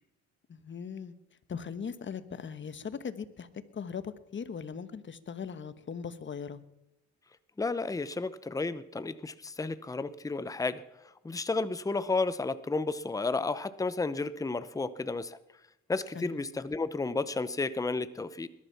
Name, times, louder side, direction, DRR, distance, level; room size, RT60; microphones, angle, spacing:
voice 1, 0.5-1.1 1.5-3.5 3.7-6.6 16.1-16.4, left 6 dB, 40° left, 12 dB, 1.3 m, -39 dB
voice 2, 7.6-10.8 11.2-15.4 15.9-18.5, left 3 dB, 10° left, 14 dB, 0.7 m, -32 dB
20.5 x 11.5 x 5.8 m, 0.86 s
cardioid pair, 90°, 30 cm